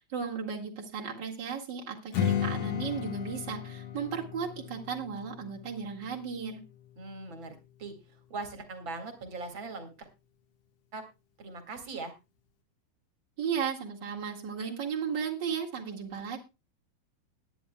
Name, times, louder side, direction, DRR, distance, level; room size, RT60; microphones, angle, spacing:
voice 1, 0.0-6.6 13.4-16.4, right 7 dB, 75° right, -1 dB, 1.0 m, -35 dB
Strum, 2.1-7.4, left 9 dB, 85° left, 1.3 m, -35 dB
voice 2, 7.0-10.1 10.9-11.0 11.4-12.1, right 3 dB, 45° right, 7 dB, 1.6 m, -41 dB
20.0 x 10.0 x 2.3 m, 0.27 s
omnidirectional pair, 5.3 m